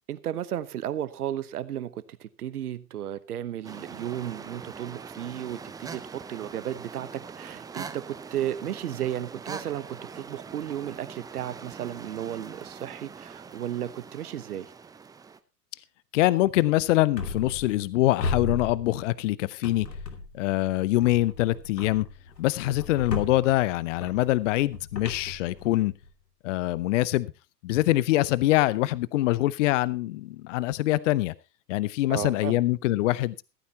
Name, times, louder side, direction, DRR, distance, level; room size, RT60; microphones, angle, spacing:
voice 1, 0.1-14.7 32.1-32.6, right 11 dB, 65° right, 1.2 m, -34 dB
sound 1, 3.6-15.4, right 5 dB, 10° right, 0.6 m, -43 dB
voice 2, 16.1-19.9 20.3-22.1 22.4-25.9 26.4-27.3 27.6-31.3 31.7-33.4, left 16 dB, 50° left, 0.8 m, -24 dB
sound 2, 17.2-17.9 18.2-19.3 19.6-20.5 21.0-26.1, left 3 dB, 75° left, 2.8 m, -36 dB
16.0 x 14.0 x 2.9 m
figure-of-eight pair, 90°, 49 cm